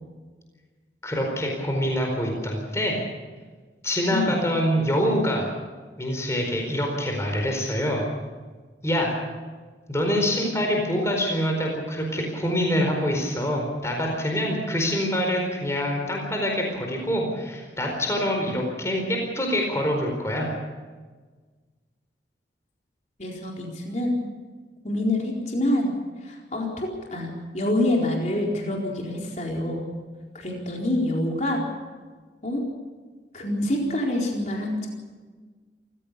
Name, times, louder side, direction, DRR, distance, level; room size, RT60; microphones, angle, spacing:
voice 1, 1.0-3.0 3.8-5.5 6.0-8.0 8.8-9.2 9.9-20.5, equal, 15° left, 1 dB, 4.5 m, -25 dB
voice 2, 23.2-24.2 24.8-25.9 26.2-29.9 30.3-31.6 32.4-32.6 33.3-34.9, left 1 dB, 40° left, -1 dB, 4.3 m, -26 dB
27.5 x 15.5 x 6.9 m, 1.4 s
head